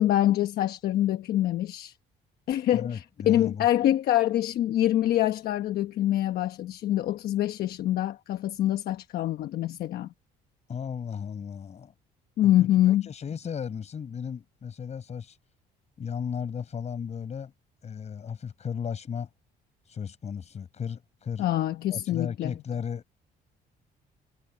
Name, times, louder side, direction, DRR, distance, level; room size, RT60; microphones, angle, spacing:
voice 1, 0.0-1.9 2.5-10.1 12.4-13.0 21.4-22.5, left 13 dB, 65° left, 1.1 m, -25 dB
voice 2, 2.7-3.7 10.7-11.9 12.6-15.4 16.0-17.5 17.8-19.3 19.9-21.5 21.9-23.0, left 7 dB, 40° left, 6.7 m, -35 dB
cardioid pair, 110°, 17 cm